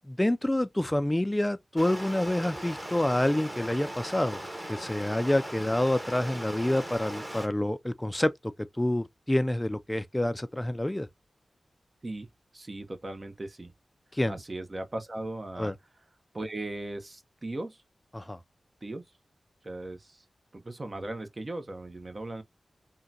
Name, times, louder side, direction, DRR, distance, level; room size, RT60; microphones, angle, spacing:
voice 1, 0.1-4.4 4.7-8.3 8.8-11.1 14.1-14.4 15.6-15.7 18.1-18.4, left 1 dB, 15° left, 0.3 m, -27 dB
Stream, 1.8-7.5, right 1 dB, 20° right, 1.1 m, -39 dB
voice 2, 12.5-13.7 14.3-15.7 16.3-17.8 18.8-19.0 19.6-20.2 20.5-22.4, right 2 dB, 40° right, 0.7 m, -38 dB
3.6 x 2.2 x 2.6 m
cardioid pair, 45°, 0 cm